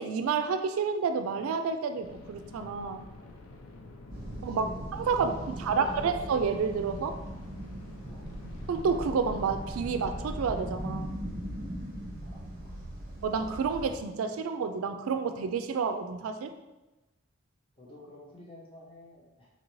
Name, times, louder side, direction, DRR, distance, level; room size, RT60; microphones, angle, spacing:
voice 1, 0.0-3.1 4.4-4.7 4.9-7.2 8.7-11.1 13.2-16.5, right 5 dB, 80° right, 9 dB, 0.3 m, -30 dB
sound 1, 2.0-12.8, left 2 dB, 85° left, 0.5 m, -49 dB
sound 2, 4.1-14.0, right 1 dB, 35° right, 0.7 m, -39 dB
voice 2, 4.5-4.8 5.1-5.3 5.7-6.2 8.1-8.3 12.2-13.0 17.8-19.5, equal, 25° left, -4 dB, 0.8 m, -51 dB
4.2 x 2.7 x 3.0 m, 1.0 s
head